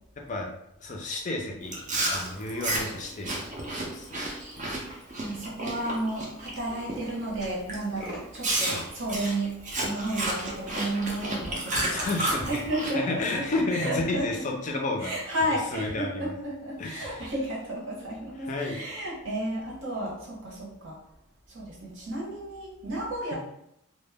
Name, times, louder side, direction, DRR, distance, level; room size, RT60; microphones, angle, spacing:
voice 1, 0.8-1.8 2.0-4.4 8.6-8.8 11.9-12.6 12.9-15.1 15.7-16.3 16.8-17.3 18.5-18.8, left 2 dB, 35° left, 1 dB, 0.4 m, -32 dB
Chewing mastication, 1.7-6.5 6.9-7.2 7.7-7.8 8.4-12.9, right 1 dB, 35° right, 0.4 m, -31 dB
Tools, 4.0-4.1 4.4-4.6 4.9-5.0 5.3-8.7, equal, 5° right, 0.7 m, -45 dB
voice 2, 4.8-9.5 9.8-13.5 13.7-14.5 15.0-21.0 21.5-23.3, right 1 dB, 65° right, -4 dB, 0.8 m, -32 dB
2.1 x 2.0 x 3.3 m, 0.79 s
head